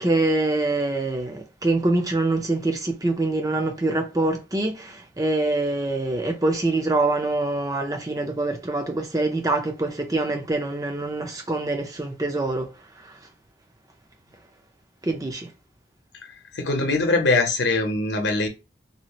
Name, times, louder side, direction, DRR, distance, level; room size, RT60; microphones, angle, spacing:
voice 1, 0.0-12.7 15.0-15.5, right 2 dB, 20° right, 0.5 m, -25 dB
voice 2, 16.5-18.5, left 3 dB, 70° left, 0.8 m, -22 dB
2.8 x 2.4 x 2.9 m
head